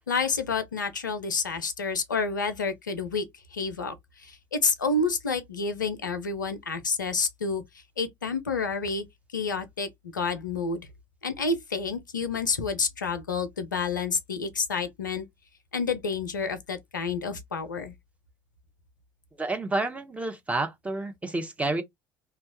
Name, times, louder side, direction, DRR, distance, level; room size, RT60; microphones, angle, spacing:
voice 1, 0.1-3.3 3.5-7.6 8.0-9.0 9.3-10.9 11.2-15.3 15.7-17.9, left 4 dB, 80° left, 0.5 m, -29 dB
voice 2, 19.4-21.8, right 2 dB, 15° right, 0.6 m, -29 dB
2.9 x 2.2 x 2.7 m
figure-of-eight pair, 65°, 10 cm